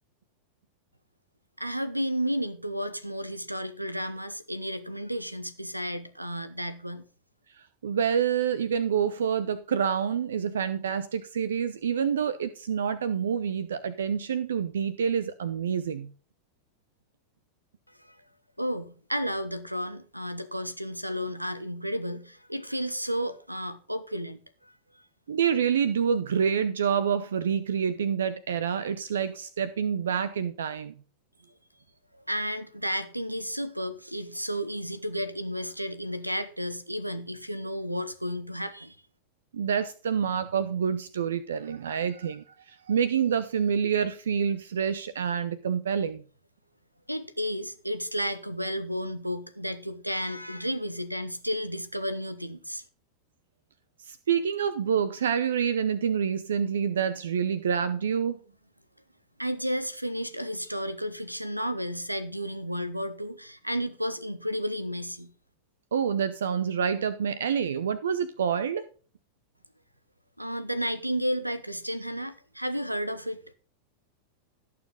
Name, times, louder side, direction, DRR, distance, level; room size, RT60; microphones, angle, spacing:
voice 1, 1.6-7.0 17.9-18.2 18.6-25.0 32.1-39.0 47.1-52.8 59.4-65.3 70.4-73.4, equal, 90° right, 1.0 m, -32 dB
voice 2, 7.6-16.1 25.3-30.9 39.5-46.2 54.0-58.4 65.9-68.8, right 7 dB, 65° right, 0.8 m, -27 dB
16.5 x 6.9 x 3.8 m
figure-of-eight pair, 90°, 0 cm